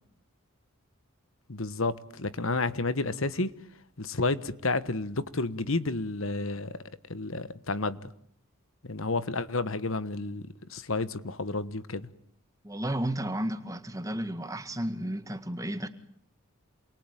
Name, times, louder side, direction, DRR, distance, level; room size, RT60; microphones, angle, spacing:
voice 1, 1.5-3.5 4.0-6.7 7.1-8.1 8.9-10.4 10.7-12.1, left 3 dB, 70° left, 1.3 m, -31 dB
voice 2, 12.6-15.9, right 1 dB, 15° right, 1.7 m, -33 dB
28.5 x 22.0 x 9.2 m
head